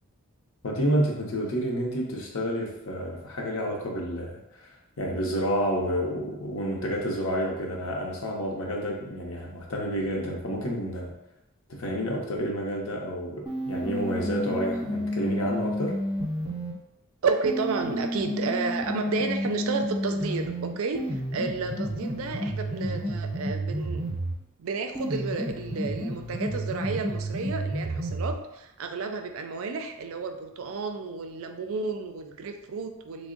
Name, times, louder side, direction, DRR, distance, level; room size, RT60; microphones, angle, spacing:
voice 1, 0.6-4.7 5.0-11.1 11.7-16.0, equal, 65° left, 0 dB, 0.7 m, -29 dB
sound 1, 13.5-16.7 17.5-24.4 25.0-28.4, equal, 20° right, 0.6 m, -31 dB
voice 2, 17.2-24.1 24.6-33.3, right 4 dB, 65° right, 6 dB, 0.4 m, -31 dB
3.4 x 2.1 x 3.7 m, 0.91 s
head